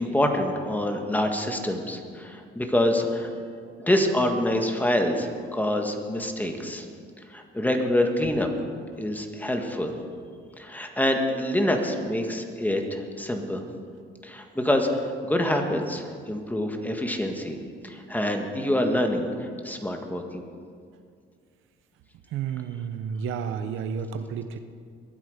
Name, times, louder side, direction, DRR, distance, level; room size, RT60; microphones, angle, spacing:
voice 1, 0.0-3.3 3.8-6.8 7.3-8.5 9.0-9.9 10.6-13.6 14.2-17.6 17.8-20.4, left 1 dB, 10° left, 4 dB, 1.7 m, -26 dB
voice 2, 22.3-24.6, right 7 dB, 85° right, 9 dB, 0.8 m, -31 dB
22.0 x 8.6 x 5.1 m, 2.1 s
cardioid pair, 90°, 20 cm